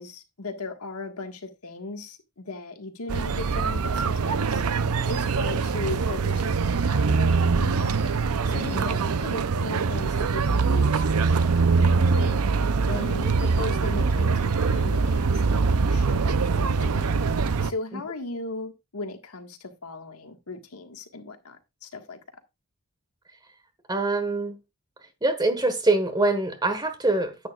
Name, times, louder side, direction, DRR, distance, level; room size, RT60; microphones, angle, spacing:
voice 1, 0.0-4.6 5.0-8.0 8.5-12.4 12.9-17.2 17.6-22.2, left 3 dB, 90° left, 1.6 m, -37 dB
sound 1, 3.1-17.7, right 4 dB, 80° right, 0.6 m, -23 dB
voice 2, 23.9-24.6 25.2-27.5, right 2 dB, 20° right, 1.4 m, -25 dB
10.5 x 9.4 x 2.4 m
head